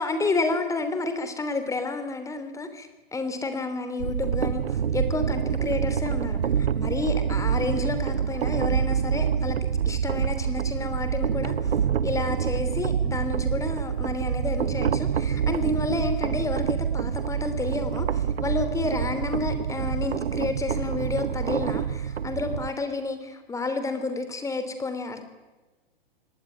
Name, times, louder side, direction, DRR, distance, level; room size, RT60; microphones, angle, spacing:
voice 1, 0.0-9.6 9.8-25.2, left 3 dB, 10° left, 9 dB, 3.1 m, -30 dB
sound 1, 4.0-22.7, right 8 dB, 80° right, 1.0 m, -27 dB
25.5 x 19.0 x 9.4 m, 1.2 s
hypercardioid pair, 120°, 30 cm